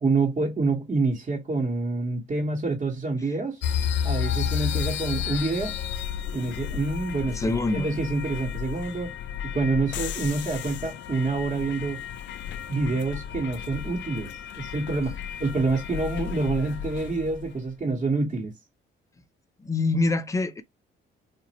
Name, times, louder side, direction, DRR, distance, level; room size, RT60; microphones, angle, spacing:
voice 1, 0.0-3.6 4.0-5.7 6.3-9.1 9.5-12.0 12.7-18.5, right 3 dB, 35° right, 1.2 m, -27 dB
sound 1, 3.6-17.6, left 9 dB, 70° left, 0.4 m, -32 dB
voice 2, 7.3-7.9 19.6-20.6, left 2 dB, 15° left, 0.6 m, -25 dB
4.0 x 2.5 x 2.9 m
cardioid pair, 90°, 20 cm